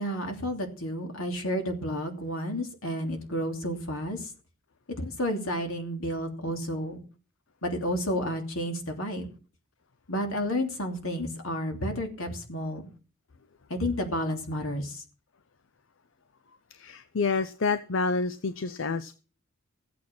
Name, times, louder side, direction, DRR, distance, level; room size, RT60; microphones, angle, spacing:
voice 1, 0.0-4.2 5.0-7.0 7.6-9.3 10.1-12.9 13.7-15.0, equal, 90° left, 2.9 m, -31 dB
voice 2, 16.7-19.1, left 4 dB, 70° left, 0.7 m, -28 dB
14.5 x 8.6 x 6.0 m
head